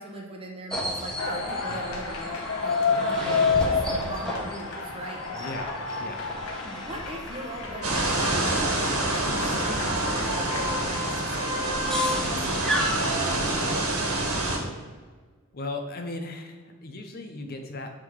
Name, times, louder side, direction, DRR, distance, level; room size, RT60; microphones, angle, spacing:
voice 1, 0.0-5.2 6.6-8.8 9.1-13.7, right 1 dB, 25° right, 0 dB, 1.1 m, -39 dB
sound 1, 0.7-13.4, equal, ahead, 1.2 m, -34 dB
sound 2, 1.2-13.7, left 4 dB, 80° left, 1.0 m, -31 dB
voice 2, 5.3-6.3 10.2-10.4 15.5-17.9, left 2 dB, 45° left, 4 dB, 0.6 m, -37 dB
sound 3, 7.8-14.6, right 2 dB, 80° right, 1.5 m, -27 dB
7.4 x 3.7 x 4.7 m, 1.5 s
head